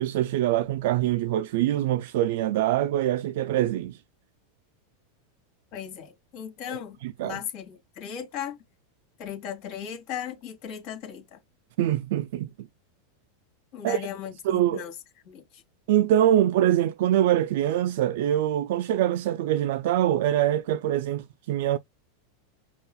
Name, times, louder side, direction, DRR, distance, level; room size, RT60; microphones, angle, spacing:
voice 1, 0.0-4.0 6.7-7.4 11.8-12.5 13.8-14.1 14.4-14.8 15.9-21.8, right 12 dB, 70° right, 0.3 m, -24 dB
voice 2, 5.7-8.6 9.2-11.4 13.7-14.9 15.2-15.6, left 9 dB, 50° left, 2.2 m, -37 dB
5.4 x 2.4 x 2.3 m
supercardioid pair, 125°, 0 cm